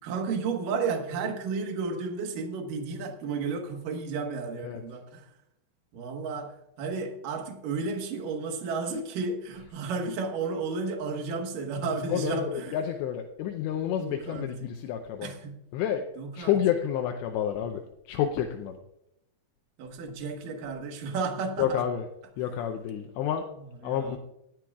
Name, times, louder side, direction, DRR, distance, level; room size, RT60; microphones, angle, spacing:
voice 1, 0.0-5.3 5.9-12.8 14.0-14.8 15.2-15.6 16.2-16.6 19.8-21.8 23.5-24.2, right 4 dB, 60° right, 2.6 m, -33 dB
voice 2, 12.1-15.3 15.7-16.0 16.4-17.8 18.1-18.8 21.6-22.1 22.4-23.5 23.8-24.2, left 9 dB, 80° left, 2.9 m, -29 dB
18.0 x 12.5 x 2.4 m
omnidirectional pair, 5.1 m